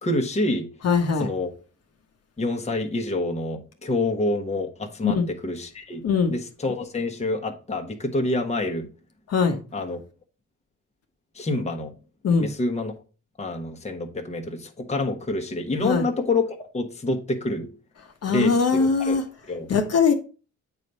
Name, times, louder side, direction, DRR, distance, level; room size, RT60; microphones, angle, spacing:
voice 1, 0.0-0.7 1.2-1.5 2.4-6.0 6.3-8.9 9.7-10.0 11.3-11.9 12.4-12.9 13.4-17.7 18.3-19.2 19.5-19.7, left 2 dB, 20° left, 1.2 m, -27 dB
voice 2, 0.8-1.3 5.0-5.3 6.0-6.3 9.3-9.6 12.2-12.5 15.8-16.0 18.2-19.2 19.7-20.1, left 5 dB, 55° left, 1.2 m, -21 dB
8.2 x 3.2 x 5.4 m
cardioid pair, 90°, 30 cm